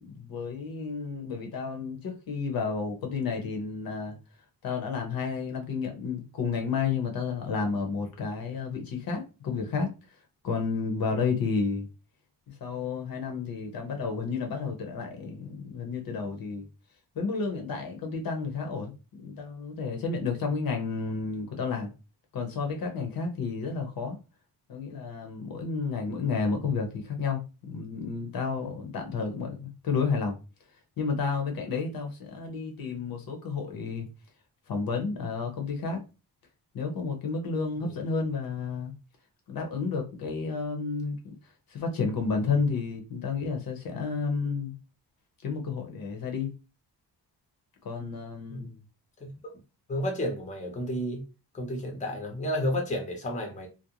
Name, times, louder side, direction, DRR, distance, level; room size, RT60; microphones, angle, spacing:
voice 1, 0.0-4.2 4.6-9.9 10.4-11.9 12.5-16.7 17.2-18.9 19.2-21.9 22.3-24.2 24.7-30.4 31.0-34.1 34.7-36.0 36.7-38.9 39.5-41.2 41.7-44.7 45.4-46.5 47.8-48.7, left 5 dB, 60° left, 0.8 m, -31 dB
voice 2, 49.9-51.2 51.5-53.7, equal, 20° left, 0.6 m, -31 dB
2.5 x 2.1 x 2.8 m
wide cardioid pair, 150°, 41 cm